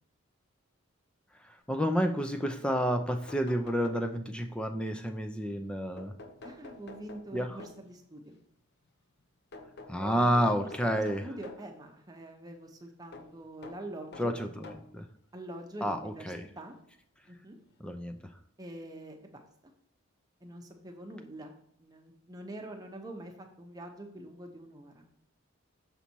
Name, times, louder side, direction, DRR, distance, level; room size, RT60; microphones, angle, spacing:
voice 1, 1.4-6.1 7.3-7.6 9.9-11.3 14.2-15.1 15.8-16.4 17.8-18.3, equal, 5° left, 6 dB, 0.5 m, -30 dB
sound 1, 2.4-2.5 2.7-4.5 6.0-8.0 9.5-11.7 13.1-15.0 15.9-16.0 17.3-17.4 17.7-17.8, left 2 dB, 50° left, 0.7 m, -49 dB
voice 2, 6.4-8.4 10.0-14.3 15.3-16.8 17.3-17.6 18.6-19.5 20.4-21.5 21.8-25.1, right 1 dB, 15° right, 3 dB, 0.8 m, -45 dB
7.2 x 4.2 x 4.5 m, 0.69 s
head